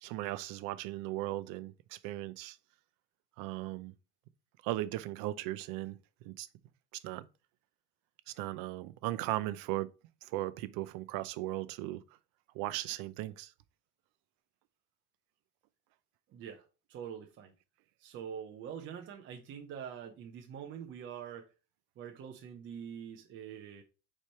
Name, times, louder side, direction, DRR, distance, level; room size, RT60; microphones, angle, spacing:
voice 1, 0.0-2.6 3.4-3.9 4.6-6.0 6.3-6.5 7.0-7.3 8.4-9.9 10.2-12.0 12.5-13.5, right 16 dB, 85° right, 0.6 m, -37 dB
voice 2, 16.3-17.5 18.0-21.5 22.0-23.8, right 8 dB, 35° right, 0.7 m, -45 dB
5.0 x 4.3 x 4.4 m
cardioid pair, 175°, 33 cm